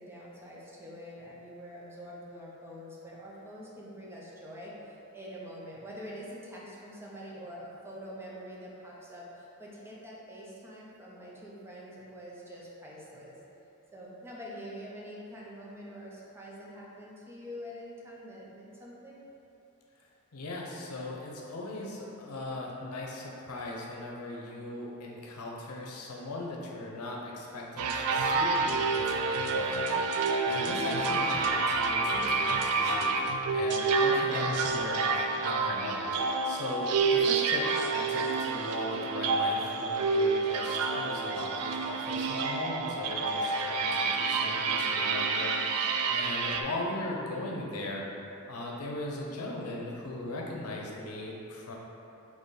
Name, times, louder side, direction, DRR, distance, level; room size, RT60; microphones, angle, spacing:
voice 1, 0.0-13.4 13.9-19.2, equal, 10° right, -5 dB, 0.6 m, -45 dB
voice 2, 20.3-33.1 33.5-48.0 48.5-51.7, left 2 dB, 90° left, -2 dB, 0.7 m, -38 dB
sound 1, 27.8-46.6, right 4 dB, 90° right, 0.3 m, -28 dB
4.0 x 3.0 x 3.8 m, 2.9 s
head